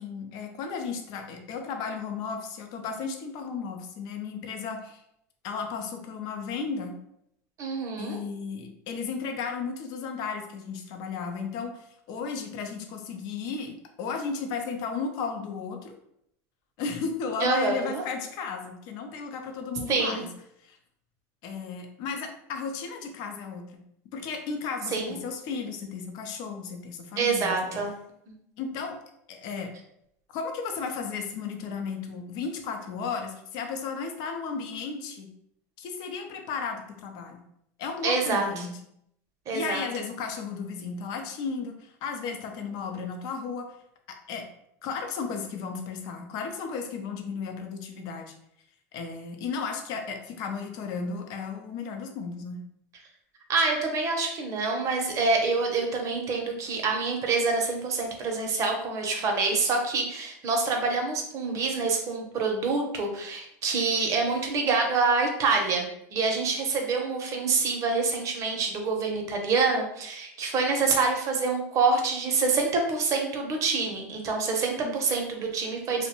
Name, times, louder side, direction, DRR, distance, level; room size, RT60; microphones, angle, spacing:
voice 1, 0.0-5.0 5.4-6.9 8.0-15.9 16.8-20.3 20.6-20.8 21.4-23.8 24.1-27.8 28.6-29.0 29.3-29.7 30.3-35.3 35.8-37.5 37.8-38.8 39.5-43.7 44.3-44.5 44.8-48.3 48.9-52.6 74.8-75.0, left 5 dB, 60° left, 4 dB, 0.5 m, -34 dB
voice 2, 7.6-8.2 17.4-18.0 19.9-20.2 24.9-25.2 27.2-27.9 38.0-38.5 39.5-39.8 53.5-65.8 66.1-76.1, right 4 dB, 40° right, 2 dB, 0.6 m, -26 dB
2.5 x 2.1 x 2.9 m, 0.75 s
supercardioid pair, 110°, 8 cm